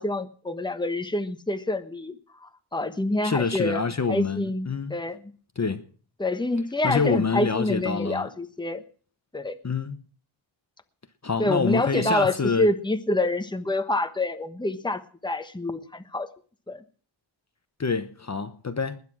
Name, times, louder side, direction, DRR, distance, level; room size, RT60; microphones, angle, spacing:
voice 1, 0.0-2.2 2.4-3.8 4.1-5.2 6.2-8.8 9.3-9.6 11.4-16.3 16.7-16.8, left 2 dB, 10° left, 1.2 m, -27 dB
voice 2, 3.2-5.0 5.6-5.8 6.8-8.3 9.6-10.0 11.2-12.7 17.8-19.0, left 4 dB, 35° left, 1.0 m, -26 dB
20.0 x 9.5 x 6.1 m
wide cardioid pair, 85°, 47 cm